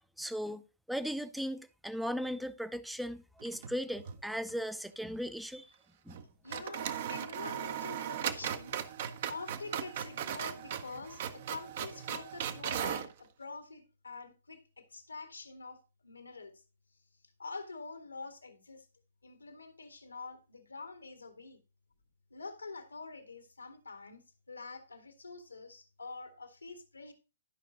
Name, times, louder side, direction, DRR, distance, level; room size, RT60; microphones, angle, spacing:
voice 1, 0.2-0.6 0.9-5.7 6.1-6.2, equal, ahead, 0.6 m, -37 dB
sound 1, 3.4-4.2 4.5-4.6 6.1-6.2 6.5-13.1, right 9 dB, 50° right, 0.9 m, -38 dB
voice 2, 6.4-8.9 9.3-16.5 17.4-18.9 19.2-21.6 22.3-27.1, left 4 dB, 85° left, 1.9 m, -46 dB
12.0 x 5.7 x 3.7 m
figure-of-eight pair, 120°, 0 cm